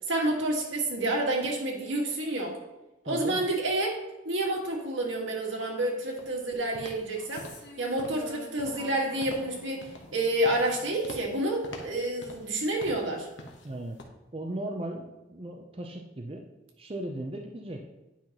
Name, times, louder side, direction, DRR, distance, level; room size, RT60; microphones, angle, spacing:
voice 1, 0.1-2.6 3.1-7.5 7.8-13.3, right 1 dB, 80° right, 0 dB, 1.7 m, -29 dB
voice 2, 3.0-3.4 13.6-14.0 14.3-16.5 16.8-17.8, right 1 dB, 30° right, 1 dB, 0.6 m, -37 dB
sound 1, 6.1-6.4 6.7-7.1 7.4-7.7 8.0-8.3 8.6-8.9 9.2-9.5 9.8-10.2 10.4-10.7 11.0-11.3 11.6-12.5 12.8-13.1 13.4-13.7 14.0-14.1, left 1 dB, 80° left, 1.1 m, -44 dB
sound 2, 7.1-11.5, equal, 60° left, 1.4 m, -48 dB
9.8 x 5.7 x 3.0 m, 1.0 s
head